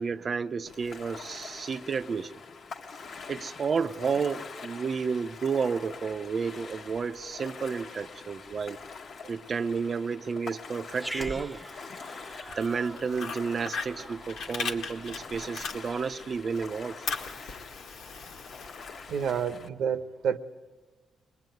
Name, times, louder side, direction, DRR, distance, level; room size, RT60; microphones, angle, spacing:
voice 1, 0.0-2.3 3.3-8.8 9.3-11.6 12.6-17.2, right 5 dB, 50° right, 11 dB, 0.8 m, -31 dB
Ocean, 0.7-19.7, left 5 dB, 65° left, 1.4 m, -45 dB
Growling, 10.9-15.6, right 1 dB, 10° right, 1.0 m, -43 dB
Fire, 12.3-16.2 16.6-19.4, left 5 dB, 90° left, 1.9 m, -38 dB
voice 2, 19.1-20.4, right 7 dB, 80° right, 10 dB, 1.0 m, -29 dB
22.5 x 21.5 x 9.3 m, 1.3 s
cardioid pair, 95°, 0 cm